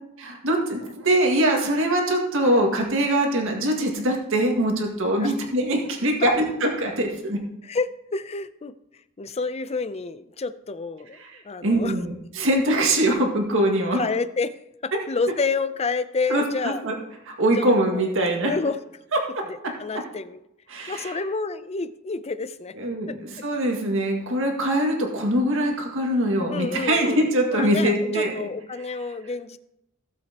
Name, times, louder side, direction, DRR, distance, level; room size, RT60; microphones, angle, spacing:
voice 1, 0.2-6.3 6.6-7.4 11.2-11.3 11.6-14.0 14.9-15.0 16.3-16.9 17.3-18.5 19.4-19.5 20.7-21.1 22.8-28.3, right 1 dB, 65° right, 1 dB, 2.0 m, -23 dB
voice 2, 7.6-8.8 9.2-11.2 11.4-12.0 13.9-14.6 14.8-16.8 17.6-18.0 18.4-18.8 19.8-20.4 20.9-22.7 23.1-23.2 26.5-27.2 27.5-29.6, left 4 dB, 30° left, 12 dB, 0.5 m, -29 dB
17.0 x 7.4 x 2.9 m, 0.85 s
head